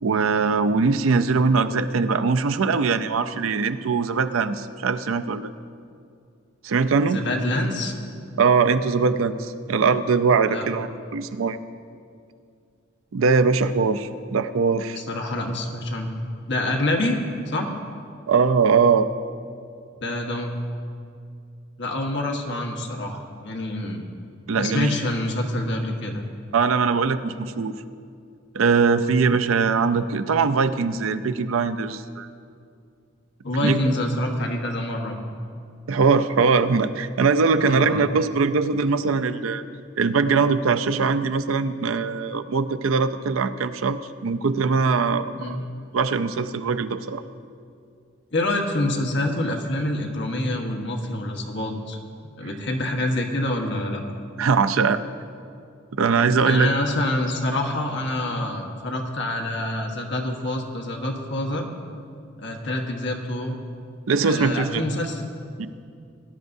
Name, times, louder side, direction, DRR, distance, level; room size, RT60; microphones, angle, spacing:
voice 1, 0.0-5.5 6.6-7.2 8.4-10.9 11.1-11.6 13.1-15.0 18.3-19.1 24.5-24.9 26.5-27.8 28.5-32.3 33.6-33.8 35.9-39.6 40.0-45.6 45.9-47.2 54.4-55.0 56.0-56.7 64.1-64.8 65.6-65.7, right 5 dB, 85° right, 10 dB, 0.5 m, -21 dB
voice 2, 7.0-7.9 10.5-10.7 15.1-16.1 16.5-17.2 17.5-17.7 20.0-20.6 21.8-24.1 24.6-26.3 33.4-35.2 37.6-38.0 45.3-45.6 48.3-52.0 52.4-54.0 56.4-61.7 62.4-63.6 64.2-65.4, left 1 dB, 60° left, 2 dB, 1.4 m, -26 dB
18.5 x 11.0 x 2.7 m, 2.4 s
head